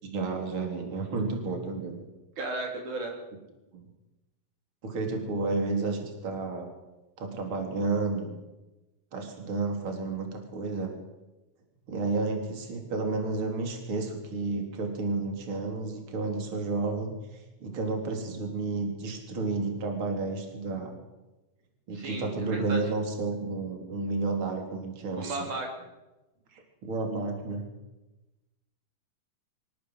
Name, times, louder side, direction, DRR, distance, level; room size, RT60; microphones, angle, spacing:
voice 1, 0.0-2.0 3.7-3.9 4.8-6.7 7.2-8.4 9.1-10.9 11.9-20.9 21.9-25.4 26.5-27.6, right 3 dB, 35° right, 3 dB, 4.2 m, -31 dB
voice 2, 2.4-3.2 21.9-22.9 25.2-25.7, right 2 dB, 60° right, 2 dB, 4.5 m, -34 dB
24.5 x 17.0 x 8.1 m, 1.0 s
omnidirectional pair, 4.1 m